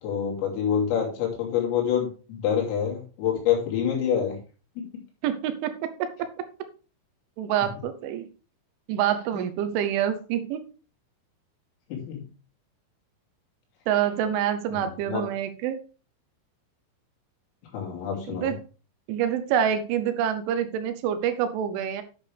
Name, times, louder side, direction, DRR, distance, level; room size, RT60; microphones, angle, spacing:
voice 1, 0.0-4.4 4.8-4.9 9.3-9.4 11.9-12.2 14.7-15.2 17.7-18.5, left 8 dB, 90° left, -2 dB, 5.4 m, -27 dB
voice 2, 5.2-6.3 7.4-8.3 8.9-10.6 13.9-15.8 18.3-18.6 19.1-22.0, right 9 dB, 80° right, 10 dB, 3.1 m, -26 dB
10.5 x 6.7 x 3.4 m, 0.35 s
omnidirectional pair, 5.8 m